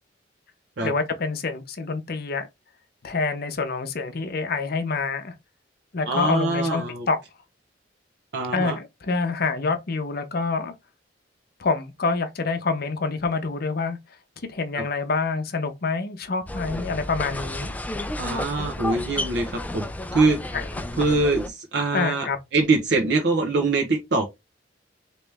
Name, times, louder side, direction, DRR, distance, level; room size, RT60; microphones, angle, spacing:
voice 1, 0.8-2.5 3.0-5.3 5.9-7.2 8.5-10.7 11.6-14.0 14.5-17.8 20.5-20.7 21.9-22.4, left 4 dB, 55° left, 0.7 m, -26 dB
voice 2, 6.1-7.1 8.3-8.8 14.7-14.8 18.2-20.6 21.0-22.3 22.5-24.3, right 3 dB, 65° right, 0.8 m, -23 dB
sound 1, 16.5-21.5, left 1 dB, 10° left, 0.4 m, -32 dB
3.2 x 2.9 x 3.4 m
head